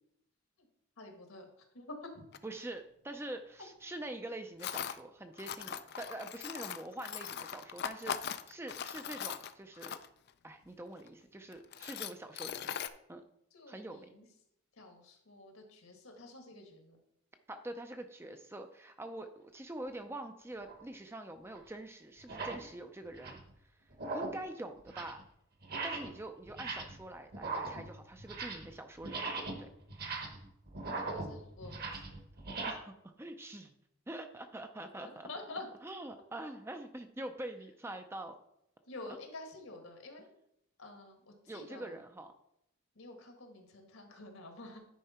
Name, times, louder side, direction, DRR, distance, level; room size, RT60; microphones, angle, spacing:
voice 1, 1.0-2.2 3.6-3.7 13.5-14.3 14.7-17.0 31.0-32.3 35.0-35.7 38.9-40.3 40.8-42.0 42.9-44.9, left 2 dB, 75° left, 3 dB, 1.7 m, -49 dB
Tools, 2.3-2.4 4.6-5.0 5.4-10.3 11.0-11.1 11.5-12.9, left 8 dB, 50° left, 0.4 m, -40 dB
voice 2, 2.4-10.0 10.4-12.8 13.1-13.2 13.7-14.1 17.5-23.4 24.1-25.2 25.8-29.7 32.7-33.7 34.1-35.3 35.8-38.4 41.5-42.3, right 1 dB, 10° right, 6 dB, 0.4 m, -45 dB
sound 1, 20.6-20.8 21.5-21.6 22.2-22.7 23.0-23.5 23.9-24.5 24.8-25.2 25.6-26.2 26.5-27.0 27.3-28.7 29.0-32.7, right 3 dB, 45° right, 1.1 m, -40 dB
10.0 x 4.7 x 4.3 m, 0.77 s
head